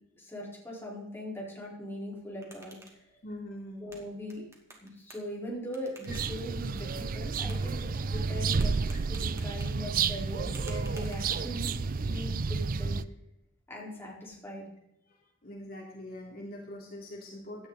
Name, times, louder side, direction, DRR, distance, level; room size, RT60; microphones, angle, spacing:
voice 1, 0.2-3.1 3.8-4.4 4.8-11.7 12.0-13.0 13.7-14.7, equal, 10° left, -4 dB, 4.5 m, -40 dB
sound 1, 2.1-11.7, right 2 dB, 15° right, 2.7 m, -55 dB
voice 2, 3.2-3.8 6.1-6.2 15.4-17.7, left 1 dB, 50° left, -2 dB, 3.0 m, -43 dB
sound 2, 6.1-13.0, right 4 dB, 45° right, 0.5 m, -31 dB
17.0 x 12.0 x 4.1 m, 0.82 s
head